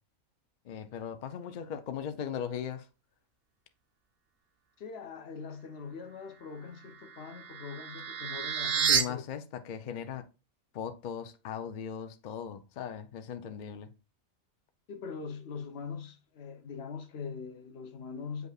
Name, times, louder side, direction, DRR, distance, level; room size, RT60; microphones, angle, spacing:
voice 1, 0.7-2.9 8.9-10.2 10.7-13.9, left 8 dB, 90° left, 0.4 m, -38 dB
voice 2, 4.8-9.2 14.9-18.5, left 5 dB, 55° left, 0.9 m, -42 dB
sound 1, 6.8-9.0, right 7 dB, 55° right, 0.7 m, -30 dB
7.8 x 5.3 x 2.3 m
omnidirectional pair, 1.5 m